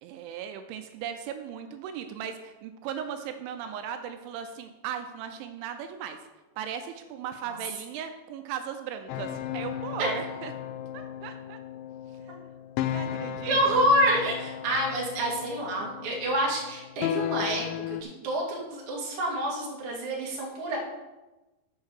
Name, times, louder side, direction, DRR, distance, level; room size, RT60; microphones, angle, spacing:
voice 1, 0.0-6.2 6.6-10.5 10.9-11.6 12.2-12.4 12.9-13.8, right 8 dB, 85° right, 7 dB, 2.9 m, -37 dB
sound 1, 9.1-18.0, left 11 dB, 85° left, 2.7 m, -35 dB
voice 2, 13.5-20.8, right 1 dB, 45° right, -3 dB, 1.9 m, -27 dB
7.1 x 6.5 x 6.4 m, 1.1 s
omnidirectional pair, 5.5 m